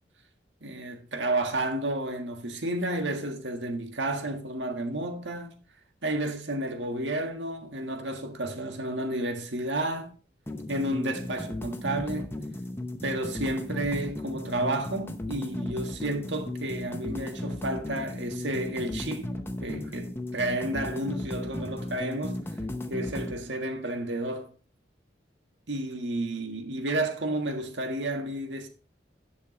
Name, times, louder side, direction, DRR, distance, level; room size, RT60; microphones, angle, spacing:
voice 1, 0.6-5.6 6.0-10.1 10.7-12.3 13.0-19.3 19.6-22.4 22.9-24.5 25.7-28.7, right 1 dB, 80° right, 1.7 m, -31 dB
sound 1, 10.5-23.4, left 1 dB, 15° left, 0.7 m, -36 dB
10.5 x 6.6 x 3.3 m
head